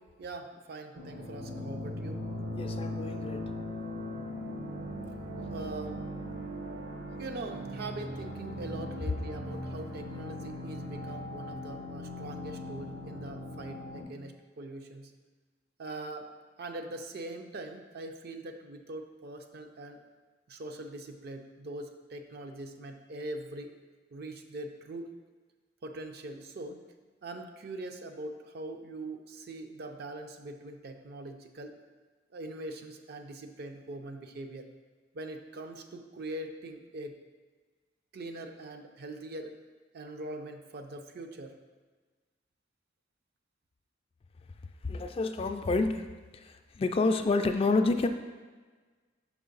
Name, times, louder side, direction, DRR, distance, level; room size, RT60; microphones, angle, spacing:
voice 1, 0.2-2.2 5.5-6.0 7.2-15.1 15.8-16.3 16.6-20.0 20.5-23.8 24.1-25.1 25.8-26.8 27.2-31.8 32.3-34.7 35.1-37.2 38.1-39.6 39.9-41.5, right 2 dB, 60° right, 6 dB, 0.5 m, -42 dB
sound 1, 0.9-14.0, left 1 dB, 80° right, 1.1 m, -39 dB
voice 2, 2.6-3.5 44.9-46.1 46.3-48.1, left 3 dB, 30° left, 7 dB, 0.3 m, -28 dB
5.7 x 4.7 x 3.9 m, 1.4 s
head